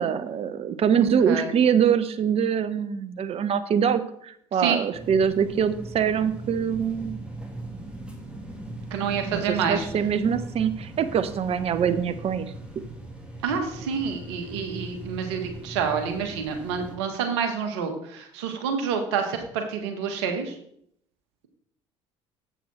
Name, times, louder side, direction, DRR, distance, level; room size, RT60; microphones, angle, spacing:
voice 1, 0.0-7.2 9.3-12.5, right 7 dB, 45° right, 12 dB, 0.8 m, -24 dB
sound 1, 4.9-16.9, right 1 dB, 5° right, 2.3 m, -39 dB
voice 2, 8.9-9.9 13.4-20.5, right 6 dB, 75° right, 5 dB, 1.4 m, -28 dB
7.7 x 7.0 x 4.2 m, 0.70 s
hypercardioid pair, 65°, 15 cm